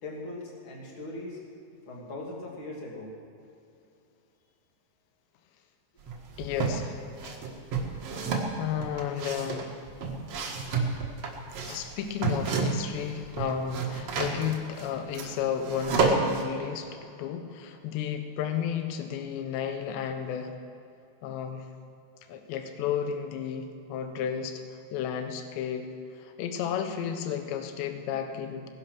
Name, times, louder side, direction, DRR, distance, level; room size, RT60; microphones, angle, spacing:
voice 1, 0.0-1.4 1.9-3.1, left 2 dB, 35° left, -2 dB, 2.6 m, -39 dB
sound 1, 6.1-6.8 7.2-13.0 13.2-16.4, right 4 dB, 55° right, 1.9 m, -30 dB
voice 2, 6.4-7.4 8.6-9.7 11.6-20.5 21.2-21.7 22.3-24.6 24.9-28.7, left 8 dB, 80° left, 7 dB, 3.1 m, -33 dB
19.5 x 10.5 x 6.2 m, 2.6 s
omnidirectional pair, 5.2 m